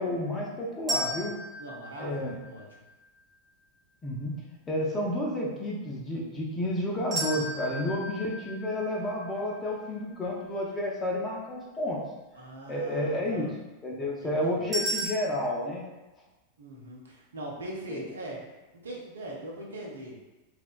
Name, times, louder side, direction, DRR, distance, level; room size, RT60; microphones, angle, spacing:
voice 1, 0.0-1.4 2.0-2.4 4.0-4.4 4.7-12.0 12.7-13.5 13.8-15.8 17.9-18.0, left 1 dB, 20° left, -3 dB, 0.4 m, -31 dB
sound 1, 0.9-3.0 7.1-10.2 14.7-15.1, right 1 dB, 25° right, 0.8 m, -35 dB
voice 2, 1.6-2.6 7.7-8.1 12.3-13.5 14.0-14.7 16.6-18.4 18.7-20.2, right 1 dB, 70° right, -3 dB, 0.5 m, -41 dB
2.7 x 2.0 x 2.3 m, 1.1 s
figure-of-eight pair, 90°, 0 cm